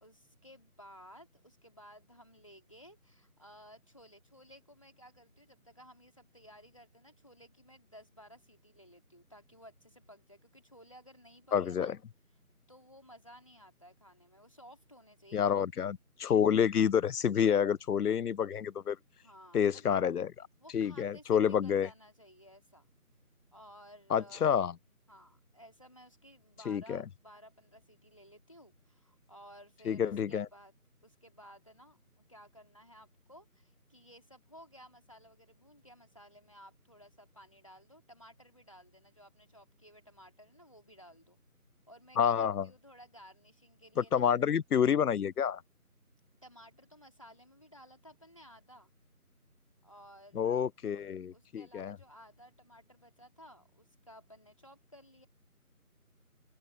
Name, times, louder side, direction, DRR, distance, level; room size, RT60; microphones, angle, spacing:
voice 1, 0.0-11.9 12.7-15.7 19.2-20.0 20.6-22.9 23.5-24.5 25.1-30.7 31.0-41.4 41.9-44.3 46.4-48.9 49.8-50.7 51.3-55.3, equal, 20° left, 3.2 m, -56 dB
voice 2, 11.5-12.0 15.3-19.0 19.5-20.3 20.7-21.9 24.1-24.7 26.7-27.0 29.9-30.5 42.2-42.7 44.0-45.6 50.4-52.0, left 8 dB, 85° left, 0.5 m, -28 dB
open air
figure-of-eight pair, 175°, 45 cm